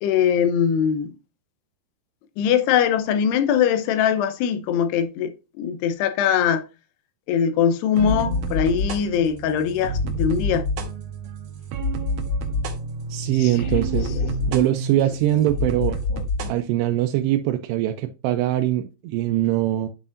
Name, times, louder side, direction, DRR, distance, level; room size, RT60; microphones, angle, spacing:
voice 1, 0.0-1.1 2.4-6.6 7.3-10.6 13.4-13.5 14.1-14.3 16.1-16.2, left 8 dB, 85° left, 2.8 m, -22 dB
sound 1, 8.0-16.5, left 1 dB, 75° right, 1.9 m, -27 dB
voice 2, 13.1-14.1 14.5-16.0 16.5-19.9, right 13 dB, 90° right, 2.7 m, -22 dB
8.6 x 5.6 x 2.5 m
omnidirectional pair, 4.7 m